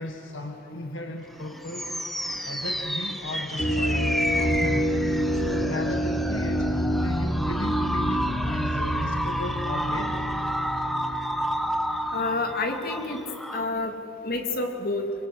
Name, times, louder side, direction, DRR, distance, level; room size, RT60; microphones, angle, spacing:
voice 1, 0.0-1.9 2.4-4.9 5.3-6.7 7.0-10.1, left 1 dB, 70° left, 4 dB, 1.7 m, -35 dB
sound 1, 1.3-13.6, equal, ahead, 1.1 m, -31 dB
sound 2, 3.6-12.3, equal, 30° left, 3.5 m, -28 dB
voice 2, 12.1-13.2 13.5-13.9 14.2-15.1, left 2 dB, 50° left, 4 dB, 2.7 m, -28 dB
25.5 x 24.0 x 8.0 m, 3.0 s
head